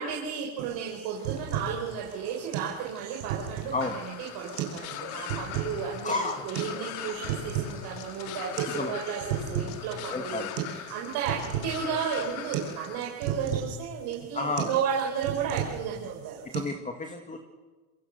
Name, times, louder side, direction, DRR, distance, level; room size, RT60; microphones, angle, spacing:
voice 1, 0.0-16.6, right 7 dB, 60° right, -2 dB, 5.2 m, -33 dB
sound 1, 0.6-16.6, right 8 dB, 85° right, 7.3 m, -35 dB
sound 2, 1.1-9.9, left 4 dB, 40° left, 7.0 m, -54 dB
sound 3, 3.8-13.0, left 12 dB, 80° left, 2.1 m, -40 dB
voice 2, 6.0-6.5 8.7-8.9 10.1-10.5 14.3-14.7 16.5-17.4, left 3 dB, 15° left, 5 dB, 2.1 m, -31 dB
26.5 x 24.0 x 6.8 m, 1.3 s
supercardioid pair, 115°, 43 cm